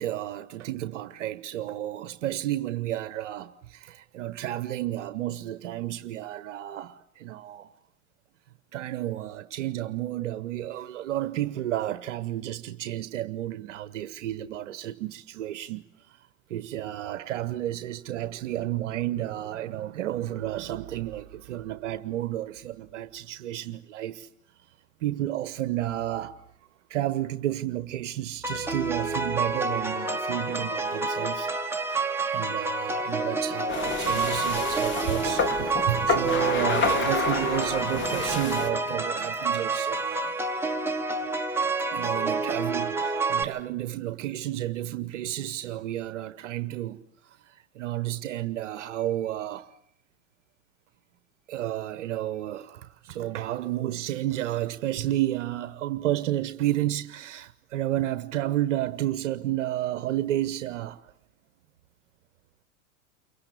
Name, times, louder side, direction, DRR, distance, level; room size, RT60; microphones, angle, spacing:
voice 1, 0.0-7.7 8.7-16.2 16.5-24.3 25.0-26.4 26.9-31.5 31.9-40.3 41.9-47.0 47.5-49.7 51.5-61.0, right 13 dB, 60° right, 1.1 m, -31 dB
sound 1, 28.4-43.4, right 3 dB, 5° right, 2.1 m, -28 dB
sound 2, 33.7-38.7, left 5 dB, 30° left, 2.7 m, -29 dB
29.0 x 23.5 x 8.6 m
figure-of-eight pair, 90°, 40 cm